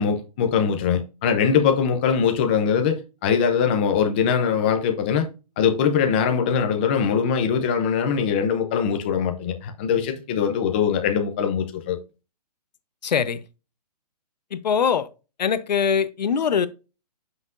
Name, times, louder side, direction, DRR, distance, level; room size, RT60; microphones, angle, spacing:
voice 1, 0.0-5.3 5.6-12.0, left 7 dB, 15° left, 0.5 m, -22 dB
voice 2, 13.0-13.4 14.5-15.1 15.4-16.7, left 7 dB, 85° left, 0.8 m, -22 dB
7.8 x 5.8 x 2.5 m
hypercardioid pair, 170°, 21 cm